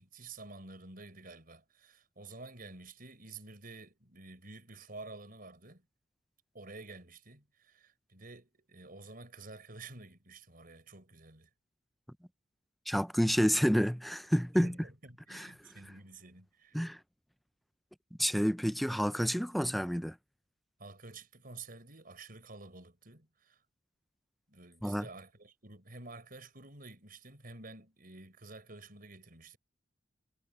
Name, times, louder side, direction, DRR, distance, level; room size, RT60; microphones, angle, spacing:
voice 1, 0.0-5.9 6.5-11.5 14.6-16.8 20.8-23.6 24.5-29.6, right 3 dB, 50° right, 5.7 m, -50 dB
voice 2, 12.9-14.7 15.3-15.5 16.7-17.0 18.2-20.1 24.8-25.1, equal, ahead, 0.4 m, -29 dB
head